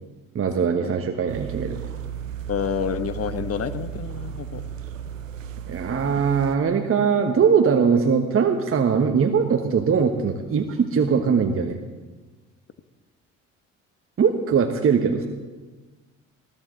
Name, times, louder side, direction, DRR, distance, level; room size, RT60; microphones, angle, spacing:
voice 1, 0.3-1.8 5.7-11.8 14.2-15.3, right 6 dB, 35° right, 4 dB, 1.3 m, -21 dB
sound 1, 1.3-6.6, right 9 dB, 90° right, 0.8 m, -35 dB
voice 2, 2.5-4.6, left 7 dB, 40° left, 12 dB, 1.2 m, -28 dB
20.5 x 14.5 x 3.9 m, 1.3 s
hypercardioid pair, 55°, 38 cm